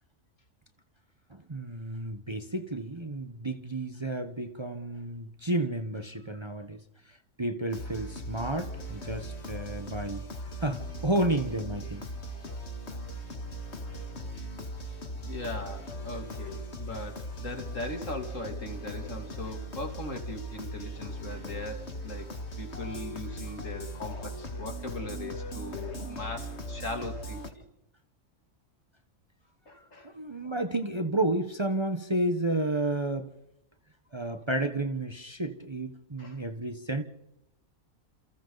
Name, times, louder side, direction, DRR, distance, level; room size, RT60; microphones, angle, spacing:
voice 1, 1.3-10.2 10.6-12.0 29.8-33.3 34.1-37.0, right 1 dB, 20° right, 1.1 m, -31 dB
sound 1, 7.7-27.5, equal, 55° left, 2.3 m, -39 dB
voice 2, 15.1-22.3 22.6-27.6 29.7-30.1 30.4-30.5 36.2-36.4, left 2 dB, 70° left, 3.2 m, -39 dB
29.0 x 28.0 x 4.0 m
omnidirectional pair, 1.4 m